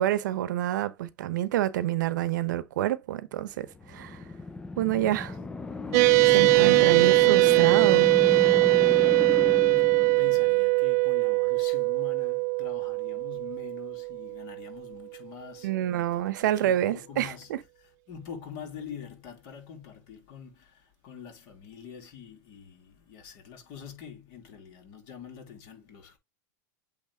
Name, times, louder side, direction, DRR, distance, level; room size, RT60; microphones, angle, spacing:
voice 1, 0.0-4.2 4.8-5.4 6.3-8.1 15.6-17.6, right 12 dB, 75° right, 0.9 m, -28 dB
sound 1, 3.7-10.6, left 3 dB, 10° left, 0.4 m, -34 dB
sound 2, 5.9-14.6, right 30 dB, 50° right, 0.4 m, -22 dB
voice 2, 6.3-7.3 8.8-17.5 18.1-26.2, left 8 dB, 45° left, 2.8 m, -45 dB
8.3 x 3.3 x 3.5 m
supercardioid pair, 135°, 10 cm